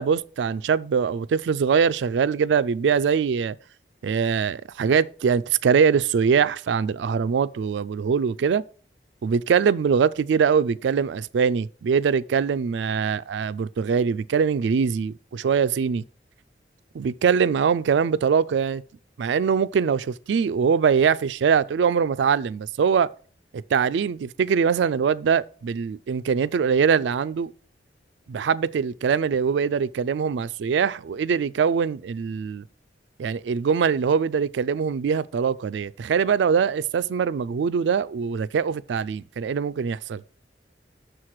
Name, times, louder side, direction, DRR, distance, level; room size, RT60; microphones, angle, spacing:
voice 1, 0.0-3.6 4.0-8.6 9.2-16.0 16.9-18.8 19.2-23.1 23.5-27.5 28.3-32.6 33.2-40.2, right 6 dB, 80° right, 0.3 m, -22 dB
6.5 x 4.8 x 5.8 m
head